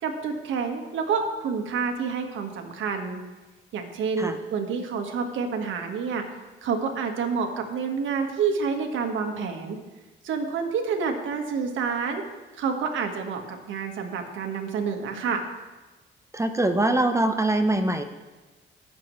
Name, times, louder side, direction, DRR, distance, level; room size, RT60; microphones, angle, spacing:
voice 1, 0.0-3.2 3.7-6.2 6.6-9.8 10.2-12.2 12.6-15.4, right 5 dB, 75° right, 4 dB, 1.5 m, -28 dB
voice 2, 16.3-18.0, right 1 dB, 15° right, 7 dB, 0.7 m, -23 dB
19.5 x 6.9 x 3.2 m, 1.2 s
cardioid pair, 90°, 20 cm